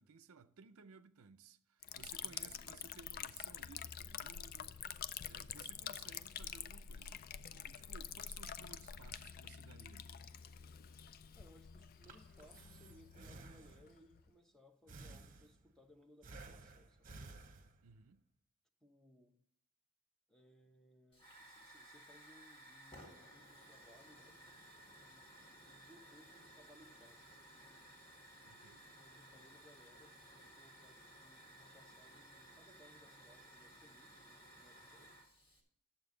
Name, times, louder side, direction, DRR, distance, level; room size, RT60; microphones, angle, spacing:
voice 1, 0.0-4.8 5.2-10.2 17.8-18.2 28.4-28.9, right 5 dB, 75° right, 0.5 m, -59 dB
Liquid, 1.8-14.3, left 8 dB, 40° left, 0.3 m, -48 dB
voice 2, 2.2-2.7 11.4-17.4 18.8-19.4 20.3-24.4 24.9-27.9 28.8-35.3, equal, 5° left, 0.8 m, -65 dB
Breathing, 11.8-14.1 14.9-15.8 16.2-18.0, right 3 dB, 35° right, 0.9 m, -55 dB
Hiss / Fire, 21.1-35.6, right 1 dB, 25° left, 1.8 m, -58 dB
11.0 x 7.4 x 3.8 m
head